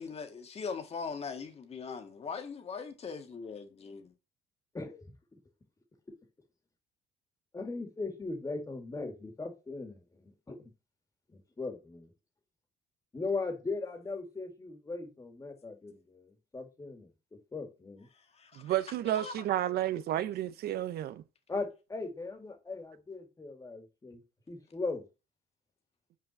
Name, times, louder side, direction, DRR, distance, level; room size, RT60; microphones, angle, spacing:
voice 1, 0.0-4.1 18.1-18.7 19.1-19.4, left 5 dB, 35° left, 1.8 m, -41 dB
voice 2, 4.7-5.1 6.1-6.2 7.5-10.7 11.3-12.1 13.1-18.1 21.5-24.2 24.5-25.1, left 3 dB, 20° left, 2.3 m, -39 dB
voice 3, 18.6-21.2, right 13 dB, 70° right, 0.8 m, -31 dB
6.0 x 4.8 x 6.6 m
cardioid pair, 110°, 17 cm